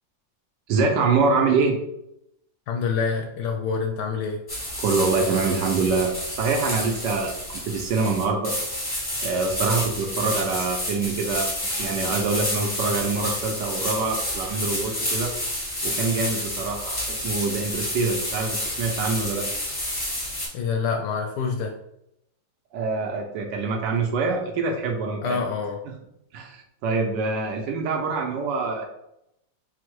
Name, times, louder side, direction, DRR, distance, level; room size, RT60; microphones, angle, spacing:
voice 1, 0.7-1.8 4.8-8.6 9.2-11.5 11.8-15.3 15.8-19.5 22.7-25.4 25.8-25.9 26.3-28.9, right 4 dB, 70° right, 2 dB, 1.2 m, -25 dB
voice 2, 2.7-4.4 20.5-21.7 25.2-25.8, left 5 dB, 75° left, 2 dB, 1.0 m, -26 dB
sound 1, 4.5-20.5, left 1 dB, 25° left, 0.5 m, -30 dB
4.4 x 2.0 x 4.5 m, 0.80 s
omnidirectional pair, 2.1 m